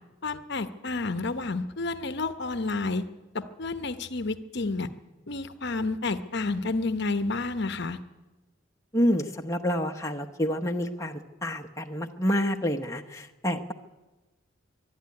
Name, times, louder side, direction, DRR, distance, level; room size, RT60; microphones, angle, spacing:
voice 1, 0.2-3.0 3.3-4.9 5.3-8.0, left 3 dB, 55° left, 11 dB, 0.9 m, -30 dB
voice 2, 8.9-13.7, equal, 15° left, 3 dB, 1.0 m, -28 dB
23.5 x 11.5 x 9.7 m, 1.1 s
head